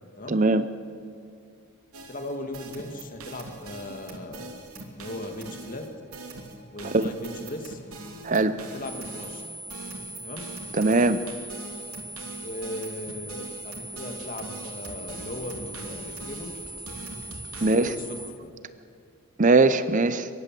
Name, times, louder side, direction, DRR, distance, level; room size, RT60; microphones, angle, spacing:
voice 1, 0.3-0.6 6.9-7.1 8.2-8.5 10.8-11.2 17.6-17.9 19.4-20.3, right 3 dB, 35° right, 13 dB, 0.6 m, -20 dB
sound 1, 1.9-17.7, right 2 dB, 80° right, 2.9 m, -42 dB
voice 2, 2.1-4.5 4.7-5.9 6.7-7.8 8.6-9.4 10.2-10.5 12.4-16.5 17.5-18.5, left 1 dB, 40° left, 5 dB, 2.1 m, -38 dB
sound 2, 8.8-18.3, right 1 dB, ahead, 3.7 m, -41 dB
23.5 x 22.0 x 7.7 m, 2.4 s
head